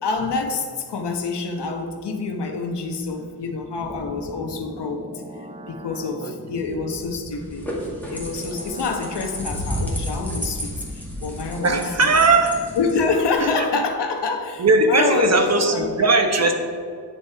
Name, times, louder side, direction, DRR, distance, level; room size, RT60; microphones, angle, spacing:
voice 1, 0.0-5.0 5.7-7.6 8.1-12.1 12.8-16.2, left 4 dB, 85° left, 4 dB, 1.2 m, -26 dB
sound 1, 3.8-13.2, right 1 dB, 20° right, 0.7 m, -40 dB
sound 2, 7.3-13.3, equal, 5° left, 2.0 m, -32 dB
voice 2, 11.6-12.5 13.4-13.7 14.6-16.5, right 3 dB, 40° right, 5 dB, 1.1 m, -18 dB
9.4 x 6.5 x 4.7 m, 2.3 s
wide cardioid pair, 105°, 40 cm